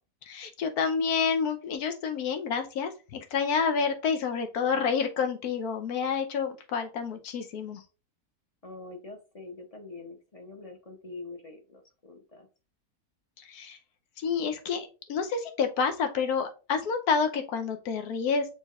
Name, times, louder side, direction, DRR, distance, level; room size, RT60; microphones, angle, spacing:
voice 1, 0.3-7.8 13.5-13.8 14.2-18.5, left 6 dB, 80° left, 7 dB, 1.3 m, -29 dB
voice 2, 8.6-12.5, left 3 dB, 35° left, 2 dB, 0.6 m, -44 dB
6.5 x 3.3 x 2.4 m, 0.32 s
omnidirectional pair, 1.6 m